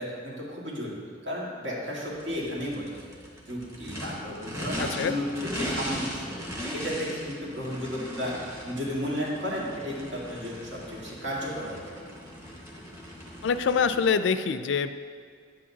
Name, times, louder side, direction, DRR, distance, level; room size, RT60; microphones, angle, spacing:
voice 1, 0.0-3.2 3.5-6.4 6.7-8.4 8.6-11.8, equal, 70° right, -5 dB, 2.1 m, -33 dB
Race car auto racing / Idling / Accelerating revving vroom, 2.1-14.1, equal, 15° right, 1.1 m, -38 dB
voice 2, 13.4-14.9, left 6 dB, 70° left, 11 dB, 0.4 m, -24 dB
10.0 x 8.5 x 2.8 m, 2.1 s
head